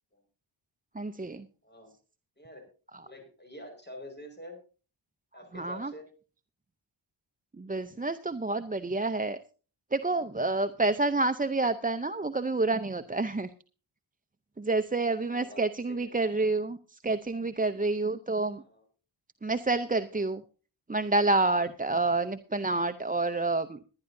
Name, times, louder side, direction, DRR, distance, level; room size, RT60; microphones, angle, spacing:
voice 1, 0.9-1.4 5.5-5.9 7.6-9.4 9.9-13.5 14.6-18.6 19.4-20.4 20.9-23.8, right 3 dB, 15° right, 9 dB, 0.6 m, -28 dB
voice 2, 3.0-4.6 5.3-6.1 15.2-15.6 15.9-16.1 18.5-18.8, left 1 dB, 20° left, 4 dB, 4.9 m, -46 dB
20.5 x 10.5 x 2.7 m, 0.35 s
wide cardioid pair, 105°, 49 cm